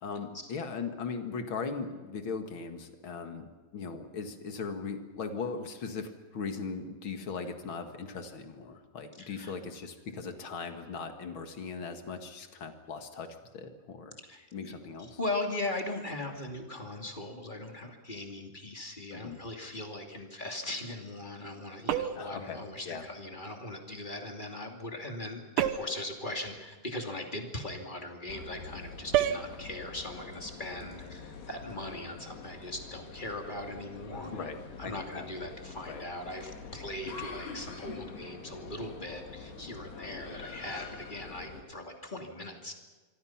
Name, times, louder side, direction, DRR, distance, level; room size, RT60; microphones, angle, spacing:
voice 1, 0.0-14.2 14.5-15.2 19.1-19.4 22.1-23.1 34.3-35.3 35.9-36.0, left 5 dB, 45° left, 6 dB, 1.8 m, -39 dB
voice 2, 9.2-9.5 14.3-34.5 34.8-42.7, left 1 dB, 15° left, 3 dB, 2.0 m, -39 dB
sound 1, 21.9-22.4 25.6-26.0 29.1-29.5, right 11 dB, 70° right, 2.2 m, -28 dB
sound 2, 28.3-41.6, left 4 dB, 85° left, 5.1 m, -45 dB
26.0 x 24.5 x 5.9 m, 1.3 s
omnidirectional pair, 4.6 m